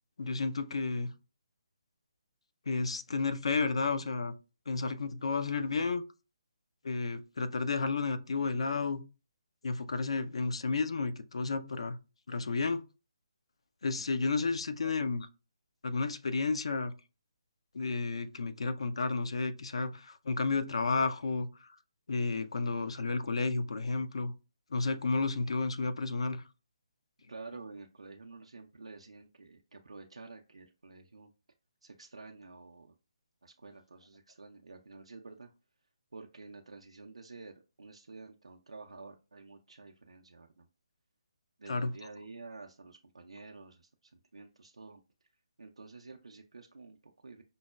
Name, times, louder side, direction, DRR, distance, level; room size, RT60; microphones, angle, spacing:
voice 1, 0.2-1.1 2.7-4.3 4.7-6.0 6.8-9.0 9.6-12.0 12.3-12.8 13.8-15.3 15.8-16.9 17.7-21.7 22.1-24.3 24.7-26.4 41.7-41.9, left 4 dB, 70° left, 0.4 m, -32 dB
voice 2, 27.3-31.3 31.8-32.9 33.4-35.5 36.1-37.5 37.8-40.7 41.6-45.0 45.6-47.4, right 3 dB, 85° right, 0.4 m, -50 dB
5.2 x 2.1 x 2.3 m
figure-of-eight pair, 150°, 3 cm